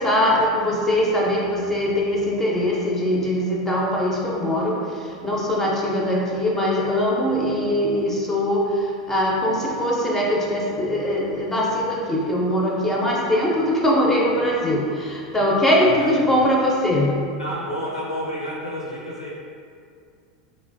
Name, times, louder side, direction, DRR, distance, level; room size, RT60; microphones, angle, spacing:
voice 1, 0.0-17.2, left 1 dB, 10° left, -4 dB, 0.4 m, -21 dB
voice 2, 15.8-16.3 17.4-19.3, equal, 90° left, -5 dB, 0.5 m, -30 dB
3.0 x 2.1 x 2.5 m, 2.3 s
figure-of-eight pair, 85°, 3 cm